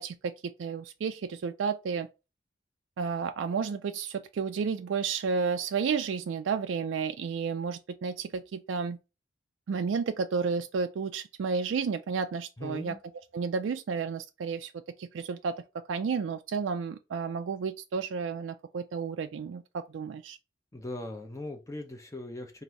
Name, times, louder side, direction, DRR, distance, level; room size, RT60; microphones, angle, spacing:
voice 1, 0.0-2.1 3.0-9.0 9.7-13.0 13.3-14.7 15.0-15.5 15.9-20.4, right 5 dB, 85° right, 0.4 m, -32 dB
voice 2, 12.6-13.0 20.7-22.6, left 2 dB, 15° left, 0.8 m, -39 dB
4.0 x 2.7 x 4.5 m
head